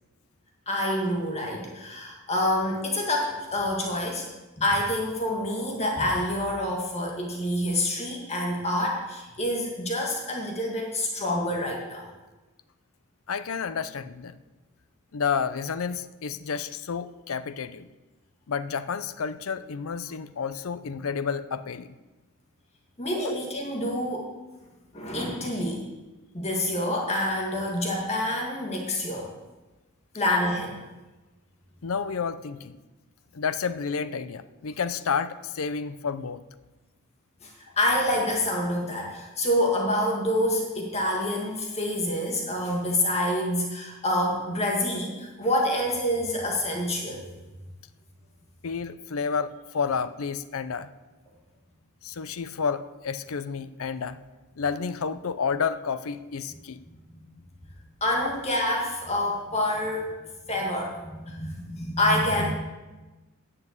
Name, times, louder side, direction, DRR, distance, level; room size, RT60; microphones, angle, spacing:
voice 1, 0.7-4.3 4.6-12.1 23.0-24.3 24.9-25.9 26.3-29.3 30.1-30.8 37.4-47.2 57.1-57.3 58.0-60.1 60.5-62.5, left 1 dB, 30° left, -1 dB, 1.8 m, -27 dB
voice 2, 13.3-14.4 15.1-17.9 18.5-21.9 23.2-23.4 31.8-32.8 33.3-36.4 48.6-50.9 52.0-54.2 54.6-56.8, left 6 dB, 75° left, 13 dB, 0.5 m, -30 dB
9.6 x 7.6 x 7.9 m, 1.1 s
head